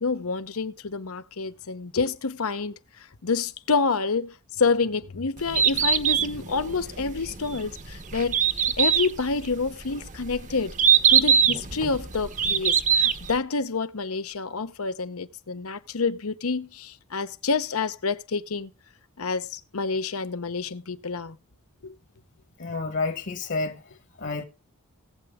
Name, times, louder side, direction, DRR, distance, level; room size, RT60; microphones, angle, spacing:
voice 1, 0.0-2.7 3.2-10.8 11.1-18.7 19.2-21.4 21.8-21.9, left 4 dB, 80° left, 0.9 m, -28 dB
Bird, 5.4-13.4, right 7 dB, 35° right, 0.8 m, -22 dB
voice 2, 22.6-24.4, left 3 dB, 55° left, 1.4 m, -30 dB
18.5 x 8.1 x 3.6 m
head